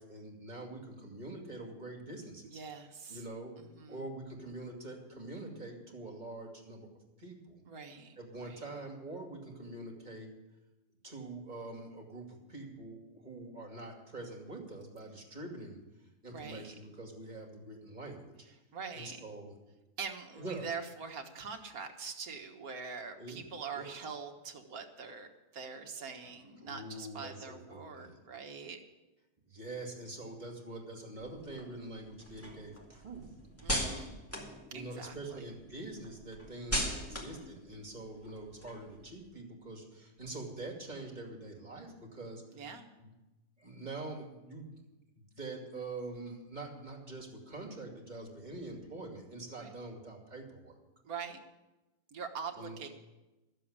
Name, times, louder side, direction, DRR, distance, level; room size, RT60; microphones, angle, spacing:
voice 1, 0.0-2.6 3.1-3.6 3.9-6.9 7.2-7.6 8.2-10.3 11.0-15.8 16.2-18.3 18.9-19.6 20.4-20.7 23.2-23.9 26.2-26.4 26.6-28.2 29.5-33.2 34.7-42.6 43.0-43.1 43.6-44.8 45.2-50.8 52.5-52.8, right 2 dB, 25° right, 0 dB, 2.5 m, -45 dB
voice 2, 2.5-3.2 3.6-4.0 7.7-8.6 16.3-16.7 18.7-19.2 20.0-25.3 25.5-28.8 33.6-34.2 34.7-35.4 37.1-37.5 42.5-42.9 49.6-49.7 51.0-51.4 52.1-52.9, right 5 dB, 65° right, 4 dB, 1.8 m, -44 dB
sound 1, 31.2-35.3 35.7-39.2, equal, 10° left, 2.1 m, -39 dB
13.0 x 7.6 x 8.7 m, 1.0 s
omnidirectional pair, 1.7 m